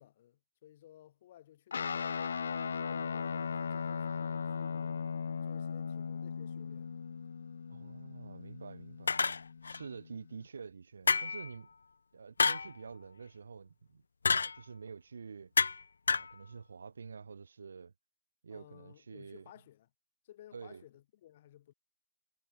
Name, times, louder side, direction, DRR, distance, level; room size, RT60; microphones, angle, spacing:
voice 1, 0.0-5.1 5.4-6.9 18.5-19.9 20.2-21.7, left 12 dB, 30° left, 7.2 m, -58 dB
Guitar, 1.7-10.5, left 6 dB, 55° left, 2.0 m, -38 dB
voice 2, 7.7-9.2 9.6-11.7 12.1-14.0 14.3-15.5 16.1-17.9 18.4-19.4 20.5-20.8, right 5 dB, 65° right, 3.5 m, -48 dB
sound 1, 9.1-9.8 11.1-11.5 12.4-12.7 14.3-14.6 15.6-15.8 16.1-16.3, left 4 dB, 85° left, 1.4 m, -29 dB
hypercardioid pair, 175°, 0 cm